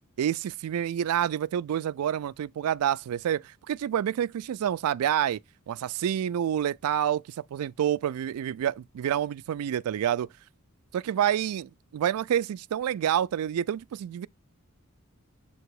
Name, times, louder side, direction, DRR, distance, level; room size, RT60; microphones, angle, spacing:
voice 1, 0.2-5.4 5.7-10.3 10.9-14.3, right 10 dB, 80° right, 0.3 m, -28 dB
7.7 x 2.9 x 4.6 m
head